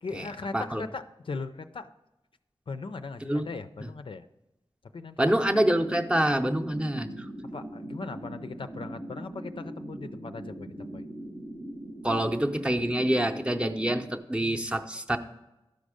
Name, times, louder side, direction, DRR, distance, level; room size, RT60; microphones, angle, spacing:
voice 1, 0.0-1.9 2.7-4.3 4.9-5.3 7.5-11.0, left 4 dB, 60° left, 9 dB, 0.4 m, -39 dB
voice 2, 5.2-7.3 12.0-15.2, right 1 dB, 10° right, 4 dB, 0.6 m, -26 dB
sound 1, 5.5-14.2, right 1 dB, 85° right, 1.3 m, -40 dB
12.0 x 5.2 x 5.0 m, 0.99 s
wide cardioid pair, 65°, 10 cm